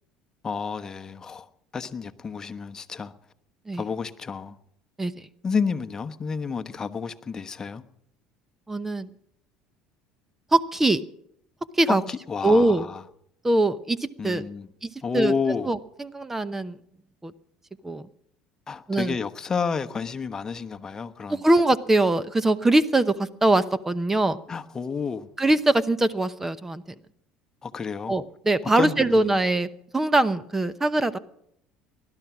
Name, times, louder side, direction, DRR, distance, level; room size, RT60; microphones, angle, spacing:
voice 1, 0.4-1.5 1.7-3.1 3.8-4.6 5.4-7.8 11.9-13.0 14.2-14.7 15.0-15.7 18.7-21.4 24.5-25.3 27.6-28.2 28.8-29.3, left 5 dB, 30° left, 1.1 m, -30 dB
voice 2, 8.7-9.1 10.5-11.0 11.8-12.0 12.4-12.9 13.4-14.4 14.8-15.3 15.7-16.8 17.2-17.3 17.8-18.0 18.9-19.2 21.3-24.4 25.4-26.8 28.1-29.7 29.9-31.2, right 2 dB, 15° right, 0.8 m, -22 dB
20.0 x 11.5 x 6.1 m
supercardioid pair, 90°, 2 cm